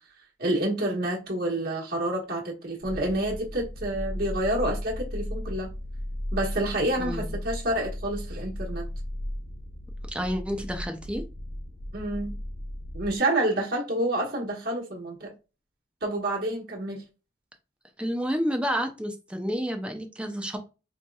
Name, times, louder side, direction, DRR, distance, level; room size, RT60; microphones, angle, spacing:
voice 1, 0.4-5.7 6.3-8.8 11.9-12.4 12.9-15.3 16.0-17.0, right 1 dB, 55° right, 1.2 m, -28 dB
sound 1, 2.8-13.2, equal, 65° left, 0.6 m, -35 dB
voice 2, 7.0-7.3 10.1-11.2 18.0-20.6, equal, 5° right, 0.6 m, -30 dB
4.2 x 2.9 x 2.2 m
head